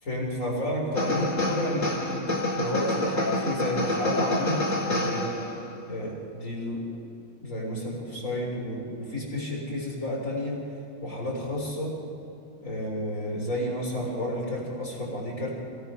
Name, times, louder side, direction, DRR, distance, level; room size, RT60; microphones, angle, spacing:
voice 1, 0.0-5.4 5.9-6.8 7.4-10.6 11.0-12.0 12.6-15.5, left 1 dB, 75° left, -2 dB, 4.4 m, -31 dB
sound 1, 0.9-5.7, left 1 dB, 55° left, 2.5 m, -28 dB
27.5 x 18.5 x 5.7 m, 2.5 s
omnidirectional pair, 1.4 m